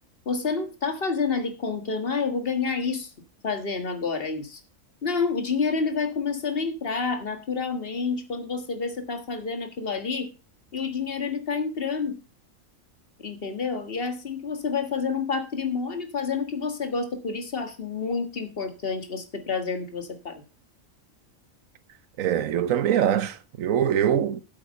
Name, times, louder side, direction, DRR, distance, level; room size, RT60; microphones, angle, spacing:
voice 1, 0.3-3.1 3.4-4.6 5.0-10.3 10.7-12.2 13.2-20.4, left 5 dB, 45° left, 1.7 m, -29 dB
voice 2, 22.2-24.4, right 9 dB, 75° right, 1.2 m, -23 dB
8.7 x 7.7 x 5.3 m
omnidirectional pair, 1.4 m